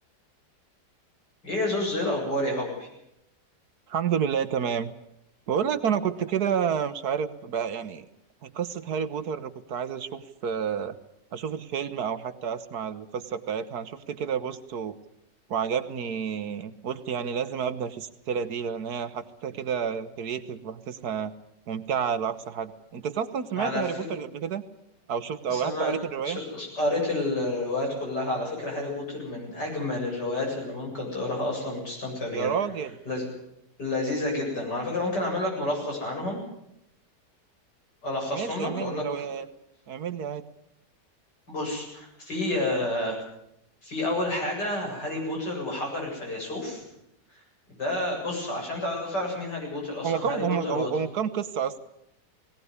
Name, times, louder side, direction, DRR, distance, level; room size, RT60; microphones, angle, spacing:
voice 1, 1.4-2.9 23.6-24.1 25.5-25.9 26.2-32.5 33.1-33.3 33.8-36.4 38.0-39.3 41.5-43.2 43.8-46.8 47.3-47.4 47.7-50.9, left 2 dB, 75° left, 0 dB, 8.7 m, -30 dB
voice 2, 3.9-4.9 5.5-8.1 8.4-10.9 11.3-15.0 15.5-21.3 21.7-24.6 25.1-26.4 32.3-32.9 38.3-39.5 39.9-40.4 50.0-51.8, right 7 dB, 65° right, 12 dB, 1.5 m, -30 dB
19.0 x 18.5 x 9.6 m, 0.79 s
omnidirectional pair, 1.9 m